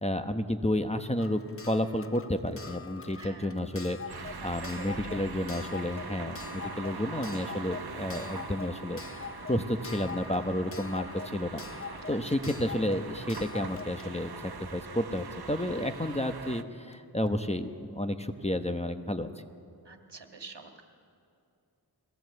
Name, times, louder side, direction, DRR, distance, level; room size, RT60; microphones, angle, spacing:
voice 1, 0.0-1.4 1.7-11.8 12.1-19.3, left 1 dB, 15° left, 7 dB, 1.0 m, -31 dB
Clock, 1.2-15.8 16.9-17.0 17.3-17.4, left 5 dB, 35° left, 0.7 m, -44 dB
voice 2, 3.2-3.6 4.4-5.3 12.1-12.4 15.7-15.9 19.9-20.8, right 4 dB, 80° right, 4 dB, 1.8 m, -47 dB
sound 1, 4.1-16.6, right 5 dB, 65° right, 1.0 m, -43 dB
sound 2, 4.5-10.3, equal, 60° left, 4.7 m, -52 dB
23.0 x 17.0 x 7.9 m, 2.6 s
wide cardioid pair, 45°, 41 cm